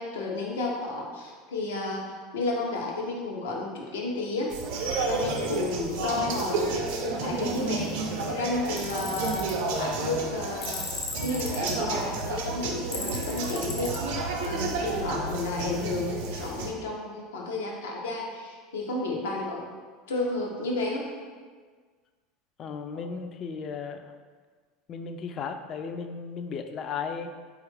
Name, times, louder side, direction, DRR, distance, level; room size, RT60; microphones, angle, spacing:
voice 1, 0.0-4.5 5.0-9.5 9.8-10.9 11.2-14.0 14.4-19.6 20.1-21.1 22.9-23.0, left 2 dB, 85° left, -1 dB, 0.7 m, -32 dB
sound 1, 4.5-16.7, right 3 dB, 75° right, 0.5 m, -31 dB
Tools, 8.8-9.5 10.6-11.7 12.9-14.0, left 4 dB, 60° left, 1.1 m, -36 dB
voice 2, 22.6-24.1 24.9-27.3, left 5 dB, 45° left, 7 dB, 0.3 m, -35 dB
4.3 x 2.4 x 3.2 m, 1.5 s
hypercardioid pair, 95°, 0 cm